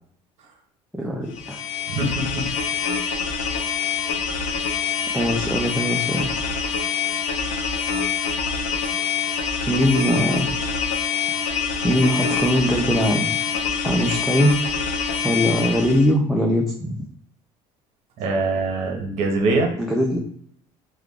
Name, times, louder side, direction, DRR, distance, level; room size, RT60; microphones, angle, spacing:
voice 1, 0.9-1.6 5.1-6.3 9.6-10.5 11.8-13.2 13.8-14.5 15.2-17.1 19.8-20.2, equal, ahead, -1 dB, 0.4 m, -21 dB
sound 1, 1.3-16.1, left 6 dB, 85° left, 0.7 m, -25 dB
voice 2, 1.9-2.5 18.2-19.7, right 2 dB, 55° right, 2 dB, 1.0 m, -23 dB
3.1 x 2.3 x 3.6 m, 0.66 s
cardioid pair, 135°, 13 cm